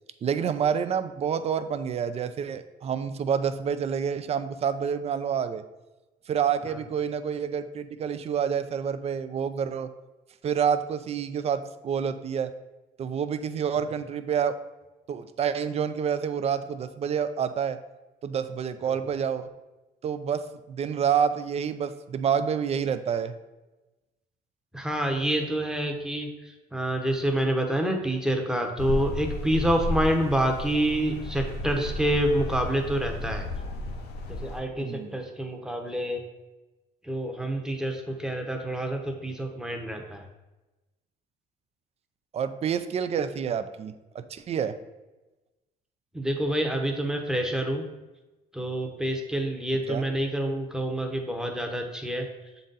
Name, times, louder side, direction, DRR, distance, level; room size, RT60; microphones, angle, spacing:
voice 1, 0.2-5.6 6.3-9.9 10.4-12.5 13.0-14.6 15.1-17.8 18.2-19.5 20.0-23.4 34.8-35.2 42.3-44.8 49.9-50.0, right 7 dB, 40° right, 11 dB, 0.4 m, -28 dB
voice 2, 24.7-33.4 34.3-36.2 37.0-40.2 46.1-47.8 48.5-52.3, right 1 dB, 5° right, 3 dB, 0.9 m, -27 dB
sound 1, 28.8-34.6, left 1 dB, 75° left, 0.8 m, -33 dB
7.2 x 4.0 x 3.9 m, 1.1 s
cardioid pair, 110°, 17 cm